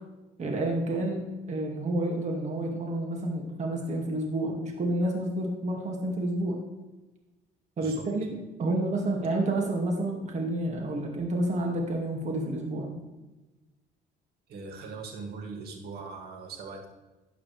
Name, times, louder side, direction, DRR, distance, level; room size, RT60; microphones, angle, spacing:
voice 1, 0.4-6.6 7.8-12.9, right 1 dB, 45° right, 1 dB, 2.2 m, -29 dB
voice 2, 7.8-8.1 14.5-16.9, right 4 dB, 70° right, 3 dB, 2.4 m, -40 dB
12.5 x 9.3 x 3.4 m, 1.1 s
cardioid pair, 110°, 17 cm